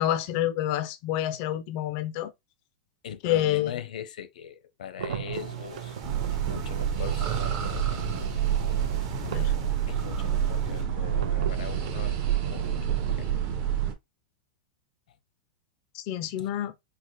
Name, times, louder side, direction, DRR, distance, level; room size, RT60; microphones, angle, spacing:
voice 1, 0.0-2.3 3.2-3.7 9.3-9.5 15.9-16.7, left 12 dB, 35° left, 0.3 m, -28 dB
voice 2, 3.0-6.0 6.3-8.3 9.9-12.2 12.5-13.4 15.1-15.2 16.4-16.5, left 9 dB, 90° left, 0.6 m, -41 dB
sound 1, 5.0-9.7 11.0-13.2, right 7 dB, 85° right, 0.5 m, -39 dB
sound 2, 5.3-10.8, right 6 dB, 50° right, 0.9 m, -42 dB
sound 3, 6.0-13.9, right 9 dB, 30° right, 0.5 m, -28 dB
4.0 x 2.0 x 3.0 m
supercardioid pair, 170°, 4 cm